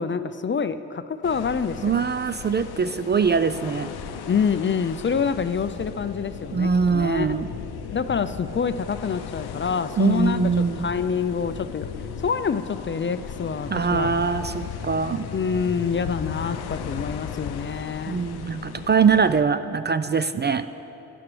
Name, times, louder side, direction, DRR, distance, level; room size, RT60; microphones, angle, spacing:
voice 1, 0.0-2.0 4.3-7.3 7.9-11.9 12.2-14.1 15.3-18.2, left 6 dB, 30° left, 12 dB, 0.5 m, -26 dB
sound 1, 1.2-19.4, left 7 dB, 75° left, 0.7 m, -36 dB
voice 2, 1.8-3.9 6.5-7.5 10.0-10.9 13.7-15.3 18.1-20.7, right 5 dB, 30° right, 12 dB, 0.4 m, -22 dB
15.0 x 10.0 x 3.3 m, 3.0 s
hypercardioid pair, 40°, 39 cm